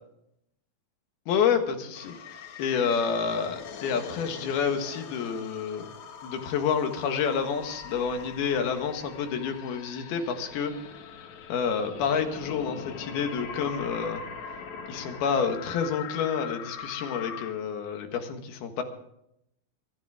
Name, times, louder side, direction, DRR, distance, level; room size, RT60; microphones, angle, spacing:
voice 1, 1.3-5.9 6.2-10.7 11.5-14.2 14.9-18.8, left 6 dB, 85° left, 6 dB, 3.5 m, -29 dB
sound 1, 1.9-17.5, left 6 dB, 60° left, 2.3 m, -42 dB
24.0 x 13.5 x 3.7 m, 0.77 s
omnidirectional pair, 4.3 m